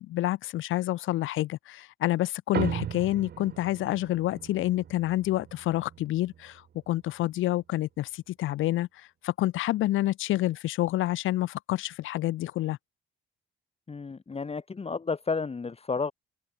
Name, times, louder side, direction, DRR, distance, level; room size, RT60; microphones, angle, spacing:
voice 1, 0.0-12.8, left 15 dB, 90° left, 2.8 m, -28 dB
sound 1, 2.5-7.3, right 9 dB, 55° right, 1.5 m, -38 dB
voice 2, 13.9-16.1, left 4 dB, 30° left, 2.6 m, -32 dB
open air
cardioid pair, 90°, 20 cm